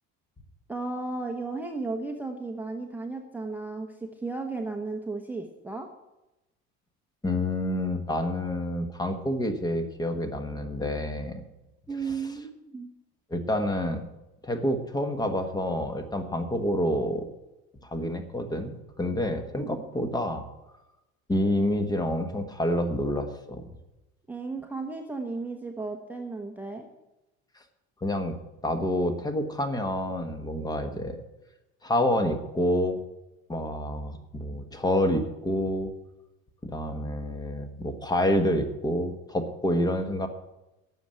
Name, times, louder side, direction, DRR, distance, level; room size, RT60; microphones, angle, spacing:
voice 1, 0.7-5.9 11.9-12.9 19.6-19.8 24.3-26.9, right 3 dB, 5° right, 2 dB, 0.9 m, -34 dB
voice 2, 7.2-11.4 12.1-12.2 13.3-14.1 14.4-17.2 17.8-20.5 21.3-23.6 28.0-28.3 28.6-31.2 31.8-33.0 33.5-35.9 36.6-40.3, left 1 dB, 15° left, 8 dB, 1.3 m, -28 dB
12.0 x 7.1 x 8.9 m, 0.97 s
cardioid pair, 145°, 29 cm